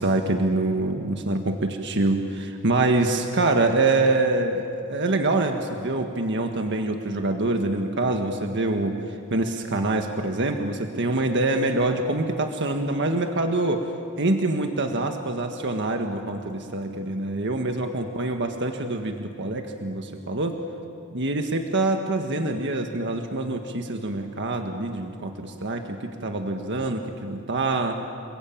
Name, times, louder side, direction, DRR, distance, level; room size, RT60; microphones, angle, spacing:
voice 1, 0.0-9.0 9.3-13.8 14.2-20.6 21.1-28.0, right 2 dB, 55° right, 4 dB, 1.6 m, -25 dB
29.0 x 22.0 x 8.9 m, 2.6 s
head